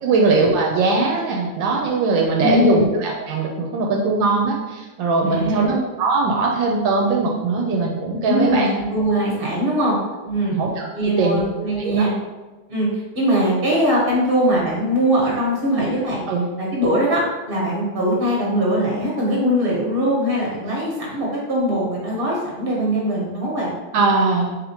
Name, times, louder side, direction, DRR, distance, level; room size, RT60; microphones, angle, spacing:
voice 1, 0.0-8.7 10.5-10.9 11.2-11.4 11.8-12.1 16.3-16.5 23.9-24.5, right 3 dB, 75° right, 0 dB, 1.2 m, -20 dB
voice 2, 2.4-2.8 5.2-5.7 8.3-10.0 10.2-10.6 10.9-12.1 12.7-16.2 16.6-23.7, equal, 35° right, -4 dB, 1.2 m, -21 dB
4.1 x 3.5 x 2.8 m, 1.2 s
omnidirectional pair, 2.1 m